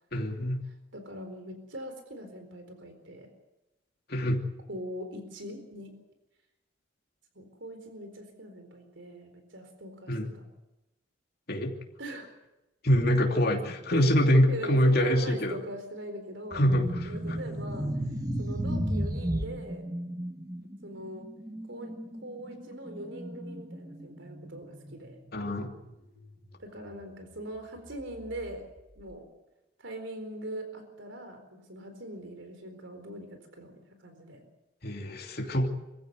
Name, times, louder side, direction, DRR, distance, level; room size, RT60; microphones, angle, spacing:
voice 1, 0.1-0.6 4.1-4.4 10.1-10.3 11.5-11.7 12.8-15.6 16.5-17.4 25.3-25.7 34.8-35.7, equal, 50° left, 2 dB, 2.9 m, -25 dB
voice 2, 0.9-3.3 4.7-5.9 7.3-10.1 12.0-12.3 13.9-14.1 14.5-16.6 17.1-17.9 18.4-19.8 20.8-21.3 21.7-21.9 22.2-25.2 26.6-28.7 29.0-29.3 29.8-34.4, right 1 dB, 70° right, 7 dB, 4.2 m, -41 dB
sound 1, 16.5-26.5 26.8-27.0 27.8-28.8, right 1 dB, 20° right, 1.8 m, -35 dB
25.0 x 15.5 x 8.1 m, 0.99 s
head